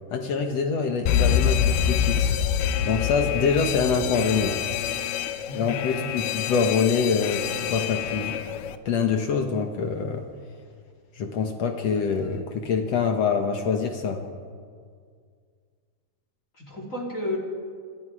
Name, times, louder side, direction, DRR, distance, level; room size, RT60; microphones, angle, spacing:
voice 1, 0.1-2.4 2.8-4.6 5.5-8.4 8.8-10.2 11.1-14.2, left 5 dB, 70° left, 4 dB, 1.6 m, -25 dB
Alarm, 1.1-8.8, left 9 dB, 85° left, 3.2 m, -26 dB
voice 2, 5.4-6.1 16.5-17.4, left 2 dB, 20° left, 1 dB, 2.9 m, -33 dB
27.5 x 27.0 x 4.9 m, 2.1 s
omnidirectional pair, 5.0 m